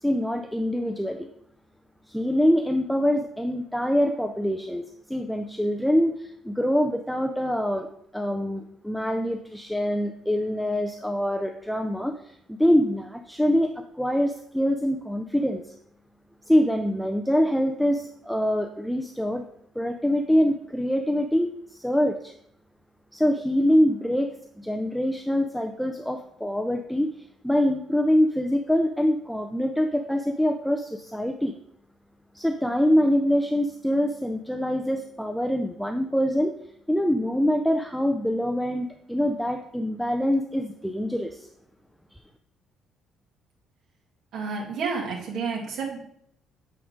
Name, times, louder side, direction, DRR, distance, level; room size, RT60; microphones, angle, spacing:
voice 1, 0.0-1.3 2.1-4.8 5.1-7.9 8.1-15.6 16.5-19.4 19.8-22.3 23.1-27.1 27.4-31.5 32.3-36.5 36.9-41.5 42.1-42.2, equal, ahead, 5 dB, 0.4 m, -24 dB
voice 2, 44.3-46.0, right 5 dB, 65° right, -3 dB, 2.0 m, -30 dB
8.5 x 3.6 x 5.1 m, 0.70 s
cardioid pair, 165°, 0 cm